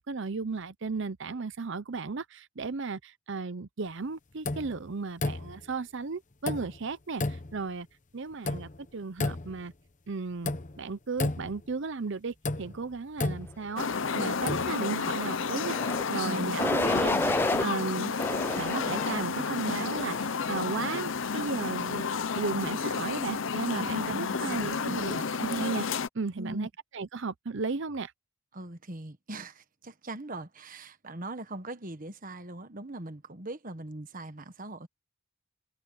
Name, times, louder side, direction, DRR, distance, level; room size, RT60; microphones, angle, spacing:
voice 1, 0.0-7.9 8.1-9.7 10.1-10.5 10.8-13.9 14.1-17.2 17.6-18.1 18.6-22.0 22.3-25.9 26.1-28.1, right 4 dB, 55° right, 0.7 m, -35 dB
sound 1, 4.5-4.8 5.2-5.7 6.5-6.8 7.2-7.6 8.5-8.8 9.2-9.7 10.5-10.8 11.2-11.7 12.4-14.0 14.3-14.7, left 2 dB, 35° left, 1.0 m, -33 dB
sound 2, 13.8-26.1, left 5 dB, 60° left, 0.7 m, -31 dB
sound 3, 15.6-16.0 16.6-17.7 18.2-19.2 19.8-20.2, left 2 dB, 10° left, 0.4 m, -29 dB
voice 2, 16.2-16.6 23.7-25.2 26.4-26.7 28.5-34.9, right 1 dB, 40° right, 1.3 m, -40 dB
head